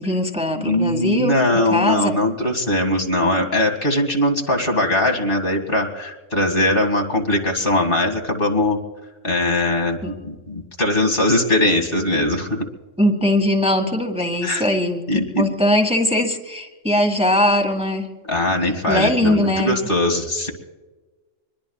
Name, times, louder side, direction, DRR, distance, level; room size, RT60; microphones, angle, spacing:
voice 1, 0.0-1.4 1.7-2.2 10.0-10.1 13.0-18.1 18.9-19.8, left 1 dB, 5° right, 2 dB, 1.9 m, -20 dB
voice 2, 0.6-8.8 9.2-12.7 14.4-14.6 15.1-15.4 18.3-20.5, left 1 dB, 45° left, 1 dB, 2.4 m, -20 dB
26.0 x 21.5 x 2.4 m, 1.2 s
omnidirectional pair, 1.3 m